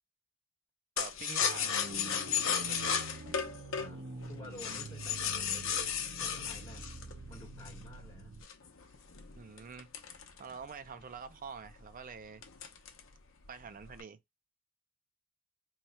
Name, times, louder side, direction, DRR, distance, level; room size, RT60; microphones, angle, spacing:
sound 1, 1.0-7.9 8.4-10.9 11.2-11.3 11.6-12.0 12.4-13.1 13.4-14.0, left 7 dB, 60° left, 0.7 m, -34 dB
voice 1, 1.0-1.8 2.3-3.0 9.4-9.9 10.4-12.4 13.5-14.2, right 5 dB, 40° right, 0.4 m, -46 dB
sound 2, 1.4-8.4, right 3 dB, 80° right, 0.7 m, -46 dB
voice 2, 3.7-8.3, left 1 dB, 20° left, 1.3 m, -52 dB
3.1 x 2.3 x 4.2 m
head